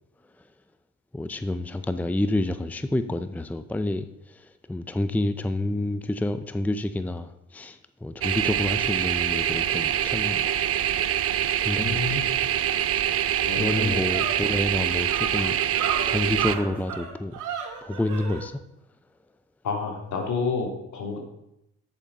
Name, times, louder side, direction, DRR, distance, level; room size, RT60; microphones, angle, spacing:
voice 1, 1.1-10.6 11.6-12.3 13.6-15.6 16.1-17.4 17.8-18.6, left 1 dB, 5° left, 11 dB, 0.6 m, -29 dB
sound 1, 8.2-16.5, right 10 dB, 50° right, 0.6 m, -25 dB
voice 2, 11.8-12.3 13.4-14.0 19.6-21.2, left 4 dB, 70° left, 1 dB, 3.1 m, -29 dB
sound 2, 13.0-13.1 13.4-18.4, right 8 dB, 85° right, 2.3 m, -33 dB
9.9 x 7.1 x 5.5 m, 0.83 s
cardioid pair, 90°, 30 cm